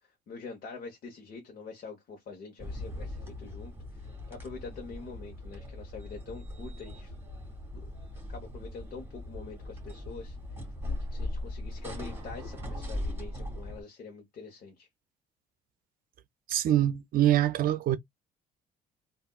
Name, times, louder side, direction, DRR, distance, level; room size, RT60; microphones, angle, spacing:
voice 1, 0.0-7.1 7.7-7.8 8.3-10.6 11.1-14.9, left 4 dB, 60° left, 1.2 m, -45 dB
sound 1, 2.6-13.8, left 1 dB, 15° right, 2.2 m, -39 dB
voice 2, 16.5-18.0, right 12 dB, 60° right, 0.5 m, -24 dB
3.6 x 2.6 x 2.4 m
cardioid pair, 110°, 17 cm